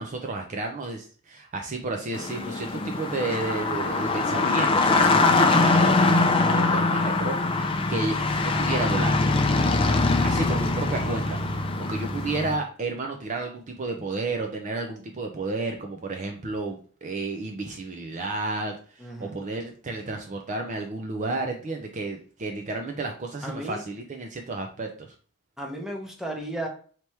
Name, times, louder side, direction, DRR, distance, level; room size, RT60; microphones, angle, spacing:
voice 1, 0.0-9.2 10.2-11.4 11.9-25.1, right 3 dB, 35° right, 3 dB, 0.5 m, -32 dB
Highway Traffic, 2.1-12.6, left 3 dB, 25° left, 0.4 m, -23 dB
voice 2, 19.0-19.4 23.4-23.8 25.6-26.7, right 1 dB, ahead, 0 dB, 0.8 m, -35 dB
3.4 x 2.9 x 4.4 m, 0.43 s
head